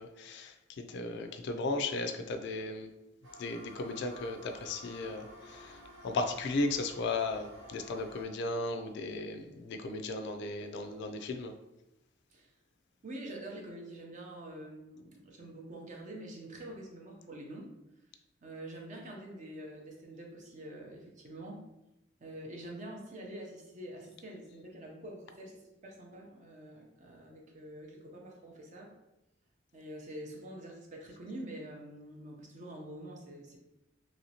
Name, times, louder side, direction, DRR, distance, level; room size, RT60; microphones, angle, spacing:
voice 1, 0.0-2.9 3.4-11.5, left 2 dB, 55° left, 6 dB, 0.3 m, -36 dB
sound 1, 3.2-8.2, equal, 70° right, 0.9 m, -52 dB
voice 2, 13.0-17.7 18.4-21.6 22.2-28.9 29.7-33.6, right 1 dB, 35° right, 0 dB, 0.6 m, -46 dB
3.0 x 2.7 x 2.8 m, 0.92 s
head